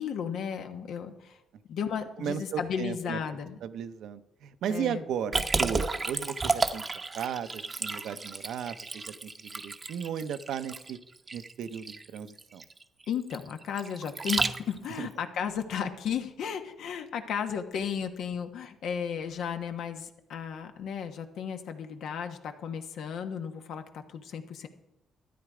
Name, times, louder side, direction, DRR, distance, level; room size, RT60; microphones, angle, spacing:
voice 1, 0.0-1.4 1.7-3.6 4.7-5.0 13.1-24.7, left 7 dB, 75° left, 7 dB, 1.2 m, -34 dB
voice 2, 2.2-3.2 3.6-6.8 7.1-11.0 11.3-12.6 15.0-15.1, right 8 dB, 75° right, 12 dB, 0.7 m, -35 dB
Liquid, 5.3-15.0, right 3 dB, 30° right, 0.8 m, -32 dB
13.0 x 9.5 x 4.9 m, 0.90 s
cardioid pair, 90°, 0 cm